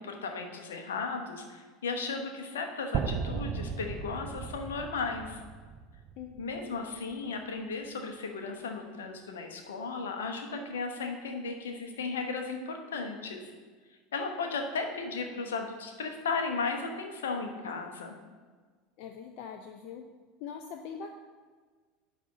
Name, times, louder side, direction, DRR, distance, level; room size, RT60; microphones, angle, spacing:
voice 1, 0.0-5.4 6.4-13.5 14.1-18.2, left 4 dB, 70° left, 4 dB, 1.0 m, -35 dB
sound 1, 2.9-7.0, right 6 dB, 40° right, 0.6 m, -36 dB
voice 2, 6.2-6.7 19.0-20.1 20.4-21.1, left 7 dB, 50° left, 4 dB, 0.6 m, -43 dB
10.5 x 3.5 x 7.1 m, 1.5 s
figure-of-eight pair, 75°, 0 cm